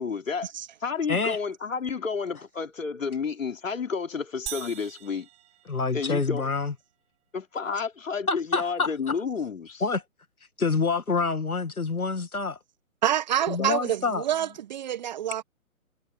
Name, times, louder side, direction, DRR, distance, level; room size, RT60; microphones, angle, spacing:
voice 1, 0.0-0.5 0.8-5.3 5.9-6.5 7.3-9.8 13.6-13.7, left 5 dB, 65° left, 3.6 m, -30 dB
sound 1, 4.5-6.4, right 13 dB, 15° right, 3.5 m, -41 dB
voice 2, 5.7-6.7 8.3-9.2 9.8-10.0 10.6-12.6 13.5-14.2, left 4 dB, 85° left, 1.9 m, -27 dB
voice 3, 13.0-15.4, right 11 dB, 30° right, 1.3 m, -27 dB
figure-of-eight pair, 135°, 42 cm